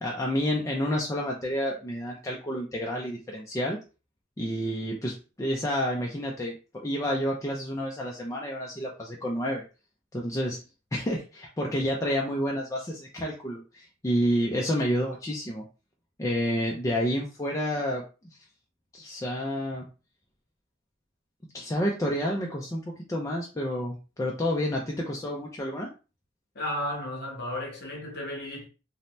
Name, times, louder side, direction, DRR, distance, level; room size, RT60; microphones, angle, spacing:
voice 1, 0.0-3.8 4.4-9.6 10.1-10.6 10.9-15.6 16.2-18.0 18.9-19.9 21.5-25.9, equal, 15° left, 0.4 m, -29 dB
voice 2, 26.5-28.7, left 1 dB, 50° left, 0.9 m, -33 dB
2.7 x 2.1 x 3.0 m
head